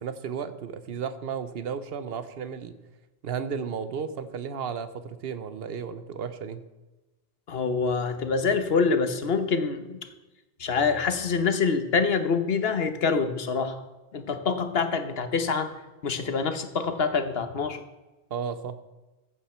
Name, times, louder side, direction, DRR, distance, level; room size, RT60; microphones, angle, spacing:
voice 1, 0.0-2.8 3.2-6.6 18.3-18.8, right 6 dB, 60° right, 12 dB, 1.0 m, -33 dB
voice 2, 7.5-10.0 10.6-13.8 14.1-15.7 16.0-17.8, left 5 dB, 60° left, 9 dB, 1.3 m, -26 dB
14.5 x 8.5 x 4.4 m, 1.1 s
omnidirectional pair, 1.1 m